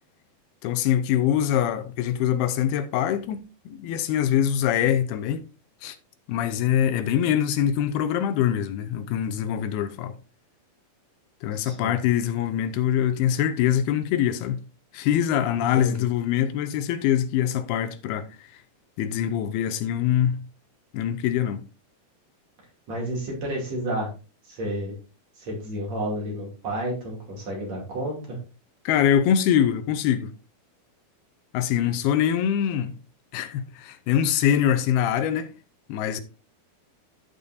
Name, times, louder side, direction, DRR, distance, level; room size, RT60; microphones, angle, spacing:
voice 1, 0.6-5.4 5.8-6.0 6.3-10.2 11.4-14.6 14.9-18.5 19.0-20.4 20.9-21.6 28.9-30.3 31.5-32.9 33.3-35.5 35.9-36.2, left 10 dB, 85° left, 2.7 m, -24 dB
voice 2, 11.5-12.0 15.6-16.0 22.9-24.1 24.4-25.0 25.4-28.4, right 1 dB, 45° right, 3.6 m, -31 dB
14.0 x 5.5 x 2.6 m
omnidirectional pair, 4.4 m